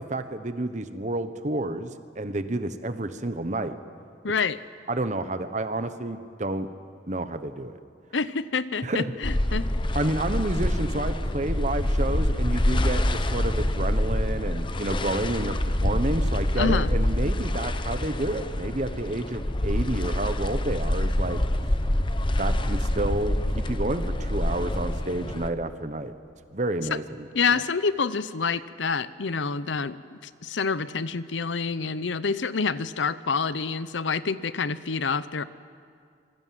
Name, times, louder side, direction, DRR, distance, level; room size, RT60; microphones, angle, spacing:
voice 1, 0.0-3.7 4.9-6.7 7.1-7.8 8.8-9.1 9.9-21.7 22.4-26.1 26.5-27.3, right 2 dB, 40° right, 10 dB, 1.1 m, -30 dB
voice 2, 4.2-4.6 8.1-9.7 16.6-16.9 27.3-35.4, left 5 dB, 80° left, 15 dB, 0.7 m, -27 dB
sound 1, 9.2-25.5, left 1 dB, 25° left, 0.9 m, -26 dB
26.5 x 21.5 x 7.7 m, 2.2 s
head